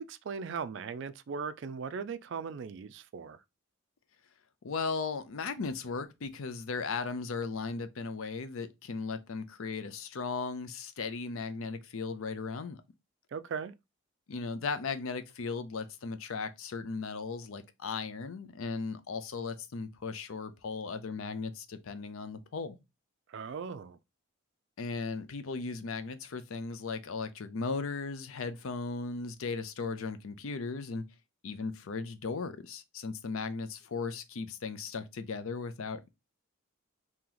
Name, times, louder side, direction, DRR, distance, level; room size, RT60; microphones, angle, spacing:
voice 1, 0.0-3.4 13.3-13.7 23.3-24.0, right 6 dB, 55° right, 0.3 m, -38 dB
voice 2, 4.6-12.8 14.3-22.8 24.8-31.0 31.4-36.1, left 4 dB, 70° left, 0.5 m, -37 dB
3.0 x 2.8 x 3.8 m
head